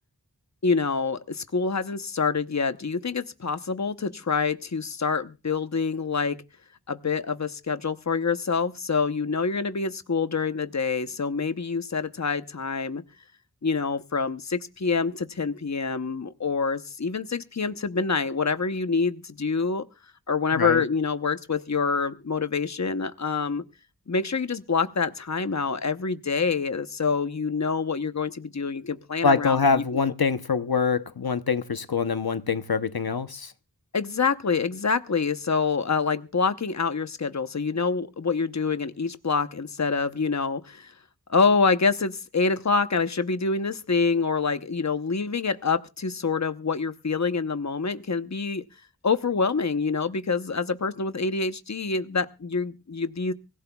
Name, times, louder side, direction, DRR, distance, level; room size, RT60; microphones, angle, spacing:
voice 1, 0.6-6.4 6.9-13.0 13.6-19.8 20.3-23.6 24.1-29.7 33.9-40.9 41.3-48.6 49.0-53.3, left 4 dB, 45° left, 0.9 m, -26 dB
voice 2, 20.5-20.8 29.2-33.5, left 5 dB, 75° left, 0.9 m, -24 dB
24.5 x 16.0 x 2.3 m
wide cardioid pair, 40°, 37 cm